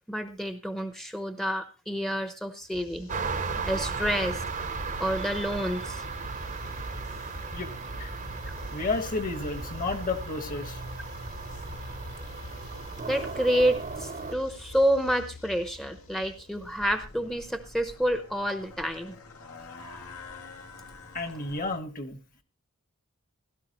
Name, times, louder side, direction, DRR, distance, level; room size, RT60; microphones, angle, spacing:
voice 1, 0.1-3.1 3.7-4.4 5.0-6.0 13.1-19.2, equal, ahead, 0.8 m, -28 dB
sound 1, 2.7-17.5, equal, 65° left, 3.1 m, -42 dB
sound 2, 3.1-14.3, right 5 dB, 35° right, 0.8 m, -36 dB
voice 2, 8.7-10.8 21.1-22.2, left 3 dB, 40° left, 1.5 m, -31 dB
sound 3, 16.6-21.8, left 3 dB, 80° left, 2.2 m, -47 dB
16.0 x 12.5 x 3.0 m
head